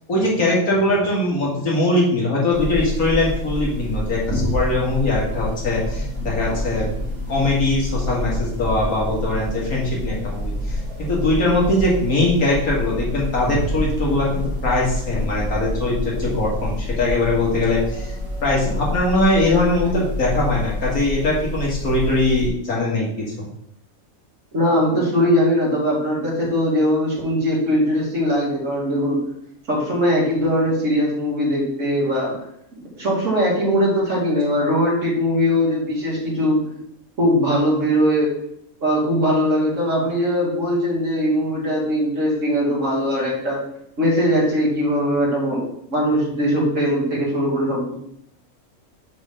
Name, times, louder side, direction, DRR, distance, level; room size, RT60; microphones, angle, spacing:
voice 1, 0.1-6.9 7.3-18.1 18.4-23.1 23.4-23.5, left 2 dB, 80° left, -4 dB, 2.6 m, -21 dB
sound 1, 2.5-22.5, left 1 dB, 10° right, 2.8 m, -27 dB
voice 2, 24.5-29.2 29.7-32.4 32.9-36.6 37.2-38.3 38.8-43.6 44.0-48.0, equal, 60° right, -5 dB, 2.9 m, -20 dB
6.4 x 6.3 x 3.9 m, 0.75 s
omnidirectional pair, 1.5 m